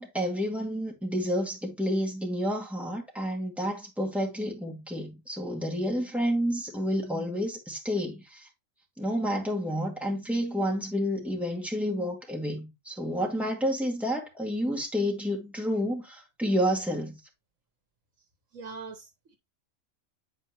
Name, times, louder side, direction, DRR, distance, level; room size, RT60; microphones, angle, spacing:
voice 1, 0.0-8.5 9.0-17.2, equal, ahead, 2.0 m, -30 dB
voice 2, 18.5-19.4, right 4 dB, 70° right, 1.4 m, -42 dB
8.7 x 4.5 x 2.9 m
omnidirectional pair, 1.4 m